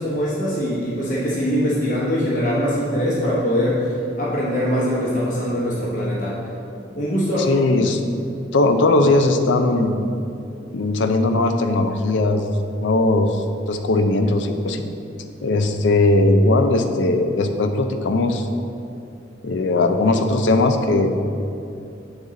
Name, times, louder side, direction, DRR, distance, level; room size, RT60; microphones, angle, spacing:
voice 1, 0.0-6.4 6.9-7.5, equal, 45° left, -7 dB, 0.9 m, -22 dB
voice 2, 7.5-8.0 8.5-10.1 10.7-12.5 12.8-14.9 15.4-18.5 19.4-21.2, left 2 dB, 80° left, 7 dB, 0.5 m, -19 dB
8.1 x 4.0 x 3.7 m, 2.7 s
head